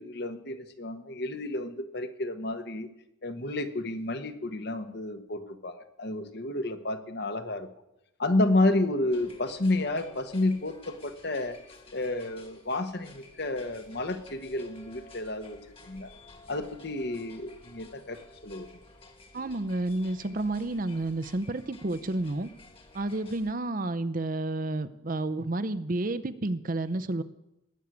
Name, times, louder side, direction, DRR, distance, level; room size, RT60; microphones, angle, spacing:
voice 1, 0.0-2.9 3.2-7.7 8.2-11.6 11.9-15.6 15.8-16.1 16.5-18.7, left 2 dB, 55° left, 8 dB, 1.3 m, -30 dB
sound 1, 9.1-23.6, left 2 dB, 25° left, 1.8 m, -53 dB
voice 2, 19.3-22.5 22.9-27.2, right 2 dB, 45° right, 11 dB, 0.7 m, -30 dB
19.5 x 6.5 x 9.6 m, 0.87 s
head